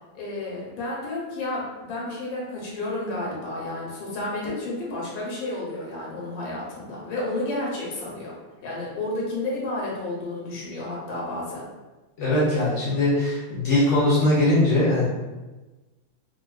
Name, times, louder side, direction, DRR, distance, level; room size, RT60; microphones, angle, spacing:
voice 1, 0.1-8.3 8.6-11.7, left 2 dB, 85° left, -5 dB, 1.7 m, -31 dB
voice 2, 12.2-15.1, left 1 dB, 55° left, -6 dB, 0.8 m, -21 dB
3.9 x 2.2 x 2.3 m, 1.2 s
omnidirectional pair, 2.1 m